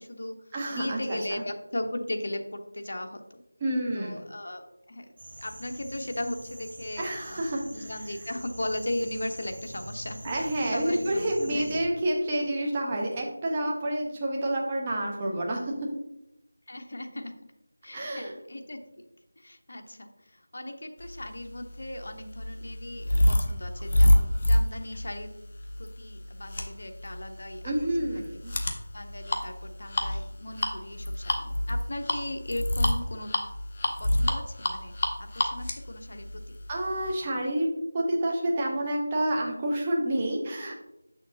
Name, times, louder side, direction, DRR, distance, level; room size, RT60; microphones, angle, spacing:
voice 1, 0.0-0.4 0.7-3.4 3.9-5.1 5.4-11.8 16.7-17.4 17.8-19.0 19.4-25.3 25.8-27.7 28.9-33.3 34.0-34.9 35.2-36.6, left 1 dB, 60° left, 5 dB, 0.9 m, -37 dB
voice 2, 0.5-1.2 3.6-4.2 7.0-7.9 10.2-15.7 17.9-18.3 27.6-28.5 36.7-37.7 37.9-40.7, right 1 dB, 20° right, -2 dB, 1.1 m, -29 dB
sound 1, 5.2-11.8, right 1 dB, 45° right, 1.5 m, -44 dB
sound 2, 21.4-37.1, left 1 dB, 35° left, 0.8 m, -27 dB
6.9 x 6.4 x 2.9 m, 0.87 s
figure-of-eight pair, 170°, 0 cm